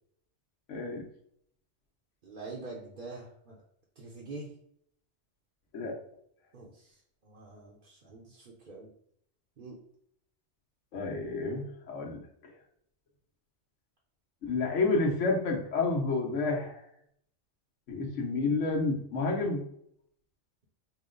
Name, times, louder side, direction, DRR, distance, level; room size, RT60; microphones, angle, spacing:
voice 1, 0.7-1.0 5.7-5.9 10.9-12.2 14.4-16.8 17.9-19.6, left 3 dB, 85° left, 0 dB, 1.3 m, -30 dB
voice 2, 2.2-3.6 4.0-4.5 6.5-6.9 7.2-8.9 9.6-9.8, right 3 dB, 50° right, -3 dB, 0.8 m, -45 dB
5.3 x 2.1 x 3.8 m, 0.68 s
omnidirectional pair, 1.2 m